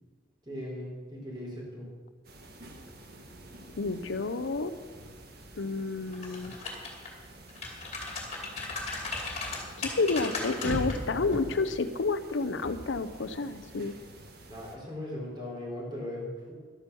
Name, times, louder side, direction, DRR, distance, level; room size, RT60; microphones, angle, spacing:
voice 1, 0.5-1.9 14.5-16.5, left 1 dB, 25° right, -3 dB, 4.1 m, -38 dB
sound 1, 2.2-14.8, right 1 dB, 55° right, 1.5 m, -44 dB
voice 2, 3.8-4.7 5.6-6.5 9.8-13.9, left 3 dB, 80° left, 11 dB, 0.7 m, -30 dB
sound 2, 6.1-7.1 7.5-10.9 11.3-11.5, left 3 dB, 35° left, 2.5 m, -36 dB
12.0 x 9.1 x 7.0 m, 1.5 s
head